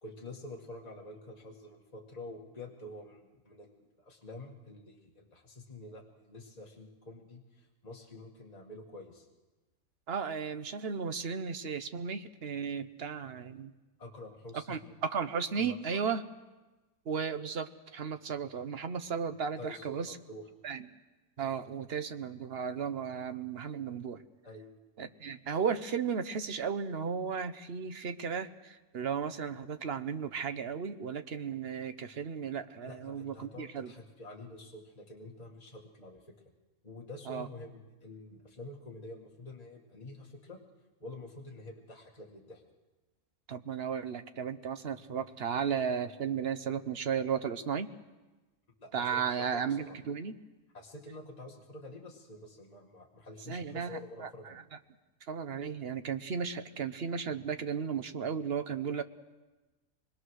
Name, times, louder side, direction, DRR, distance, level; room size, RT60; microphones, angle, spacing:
voice 1, 0.0-9.3 14.0-15.0 15.5-16.0 19.6-20.5 24.4-24.7 32.8-36.3 36.8-40.6 41.0-42.6 48.8-50.0 50.7-54.6, left 2 dB, 25° left, -1 dB, 2.1 m, -48 dB
voice 2, 10.1-13.7 14.7-16.2 17.1-20.1 20.6-20.9 21.4-24.2 25.0-33.9 37.3-37.5 43.5-47.9 48.9-50.4 53.5-54.6 55.3-59.0, right 6 dB, 45° right, 9 dB, 1.1 m, -35 dB
26.0 x 21.5 x 6.4 m, 1.2 s
omnidirectional pair, 1.6 m